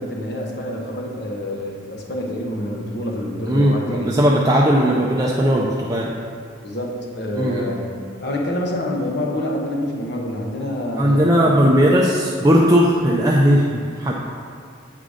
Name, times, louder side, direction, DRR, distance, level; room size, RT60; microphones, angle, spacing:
voice 1, 0.0-4.1 6.6-7.9 8.2-11.6, left 1 dB, 55° left, 0 dB, 1.0 m, -27 dB
voice 2, 3.5-6.1 7.3-7.6 11.0-14.1, equal, 20° right, -4 dB, 0.4 m, -17 dB
8.4 x 3.8 x 4.9 m, 2.2 s
head